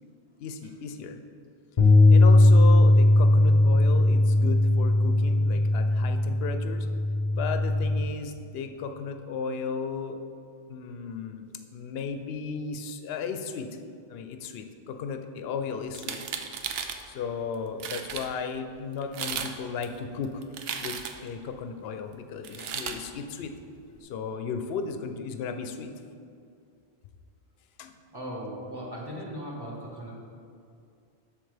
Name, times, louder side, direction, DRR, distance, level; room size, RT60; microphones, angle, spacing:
voice 1, 0.4-1.2 2.1-6.9 7.3-10.2 10.7-11.5 11.7-13.7 14.1-16.2 17.1-20.4 20.7-23.5 24.0-25.9 27.8-27.9, left 5 dB, 70° left, 7 dB, 0.8 m, -35 dB
sound 1, 1.8-8.0, left 2 dB, 40° left, 0.7 m, -19 dB
sound 2, 15.9-17.0 17.5-17.6 17.8-18.3 19.0-19.5 19.8-21.3 22.4-23.0, right 7 dB, 70° right, 0.8 m, -35 dB
voice 2, 28.1-30.2, equal, 20° right, -4 dB, 1.3 m, -38 dB
7.8 x 6.4 x 3.3 m, 2.4 s
omnidirectional pair, 1.1 m